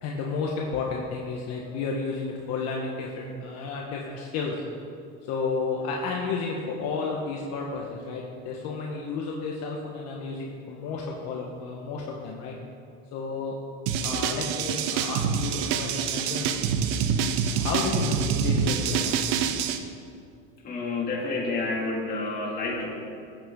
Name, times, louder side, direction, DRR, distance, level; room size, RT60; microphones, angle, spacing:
voice 1, 0.0-4.6 5.2-12.6 13.1-13.5 14.0-16.6 17.5-19.2, left 4 dB, 55° left, -1 dB, 1.4 m, -32 dB
sound 1, 13.9-19.8, right 7 dB, 75° right, 0.9 m, -26 dB
voice 2, 20.6-22.9, left 3 dB, 30° left, -2 dB, 2.6 m, -29 dB
16.0 x 9.0 x 3.9 m, 2.4 s
supercardioid pair, 135°, 30 cm